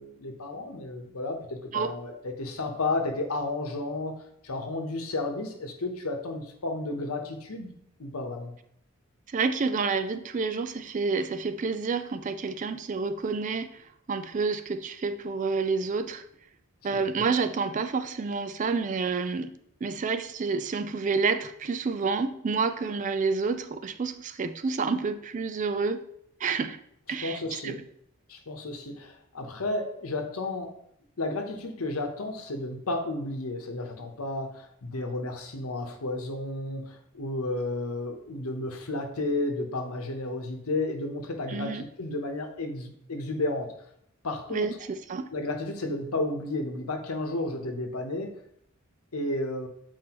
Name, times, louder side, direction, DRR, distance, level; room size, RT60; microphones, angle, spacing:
voice 1, 0.0-4.2 4.4-7.7 8.0-8.5 16.9-17.3 27.2-27.8 28.3-30.7 31.2-43.7 44.2-44.8 45.3-48.3 49.1-49.7, left 2 dB, 85° left, 1.0 m, -32 dB
voice 2, 9.3-16.2 16.8-19.5 19.8-26.1 26.4-26.8 27.1-27.8 41.5-41.8 44.5-45.3, right 4 dB, 35° right, 0.3 m, -29 dB
7.7 x 4.6 x 3.0 m
head